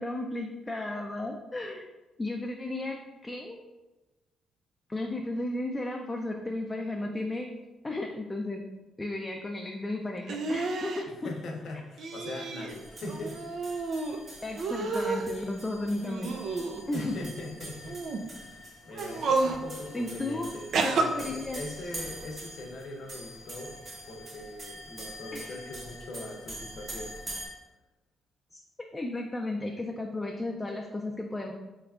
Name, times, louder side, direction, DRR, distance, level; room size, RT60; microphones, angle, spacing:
voice 1, 0.0-1.8 2.2-3.6 4.9-7.5 7.8-8.6 9.0-11.1 14.4-16.3 16.9-17.2 19.9-20.5 20.8-21.6 25.3-25.5 28.5-28.6 28.9-31.5, left 2 dB, 15° left, 1 dB, 0.4 m, -34 dB
sound 1, 10.3-11.0 12.0-12.7 13.1-14.2 14.6-15.3 16.0-17.1 17.9-18.2 18.9-19.6 20.7-21.0, right 3 dB, 65° right, 0.4 m, -30 dB
voice 2, 11.1-13.5 16.9-18.5 18.8-23.8 24.1-27.2, left 2 dB, 65° left, 1 dB, 0.7 m, -41 dB
sound 2, 12.7-27.5, right 1 dB, 45° right, 1.0 m, -45 dB
3.8 x 3.3 x 2.4 m, 1.1 s
cardioid pair, 90°, 0 cm